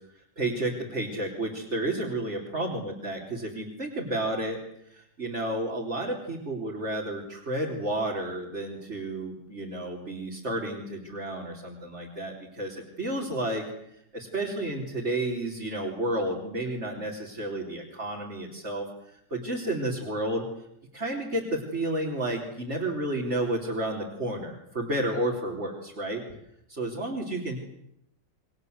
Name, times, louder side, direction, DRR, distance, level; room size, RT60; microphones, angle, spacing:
voice 1, 0.4-4.6 4.9-13.6 14.1-20.5 20.9-26.2 26.7-27.6, right 1 dB, 40° right, -2 dB, 4.1 m, -31 dB
29.5 x 23.0 x 8.1 m, 0.79 s
omnidirectional pair, 1.8 m